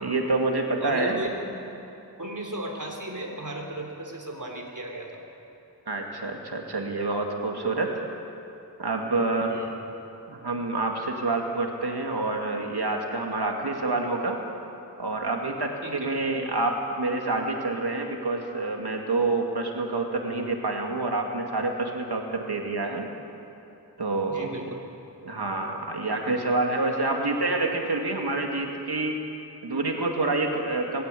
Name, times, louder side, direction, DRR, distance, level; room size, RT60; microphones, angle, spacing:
voice 1, 0.0-1.2 5.9-7.9 8.8-9.6 10.3-14.4 15.0-23.1 24.0-24.6 25.2-29.3 29.6-31.0, right 2 dB, 70° right, 2 dB, 2.3 m, -27 dB
voice 2, 0.8-1.4 2.2-5.2 9.5-9.7 15.8-16.1 24.3-24.8, right 1 dB, 50° right, 0 dB, 3.4 m, -35 dB
21.5 x 15.5 x 8.5 m, 2.8 s
wide cardioid pair, 55°, 40 cm